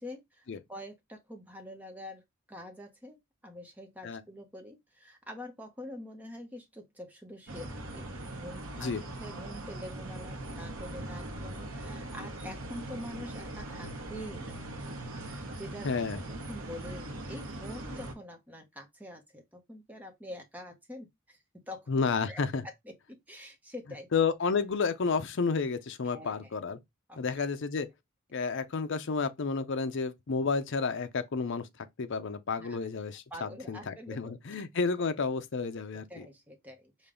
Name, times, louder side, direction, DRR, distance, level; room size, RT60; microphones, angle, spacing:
voice 1, 0.0-0.4 0.7-2.2 2.5-8.1 8.3-14.7 15.5-16.2 16.5-21.9 22.3-22.4 22.8-24.1 26.1-26.4 27.1-27.2 32.6-32.8 33.3-34.4 35.0-35.1 36.1-37.1, left 1 dB, 10° right, 0.9 m, -45 dB
sound 1, 7.5-18.1, right 1 dB, 80° right, 1.0 m, -41 dB
voice 2, 15.8-16.2 21.9-22.7 24.1-26.8 27.2-27.9 28.3-31.7 32.0-36.3, left 5 dB, 60° left, 0.5 m, -31 dB
5.1 x 2.3 x 3.7 m
head